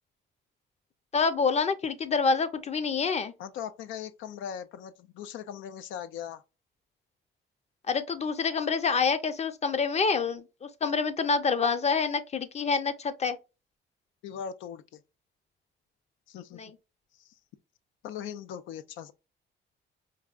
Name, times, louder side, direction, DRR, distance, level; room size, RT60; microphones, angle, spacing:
voice 1, 1.1-3.3 7.9-13.4 16.5-16.7, left 5 dB, 35° left, 0.6 m, -27 dB
voice 2, 3.4-6.4 14.2-15.0 16.3-16.6 17.2-17.3 18.0-19.1, left 8 dB, 80° left, 0.4 m, -39 dB
4.7 x 2.3 x 2.4 m
cardioid pair, 90°, 20 cm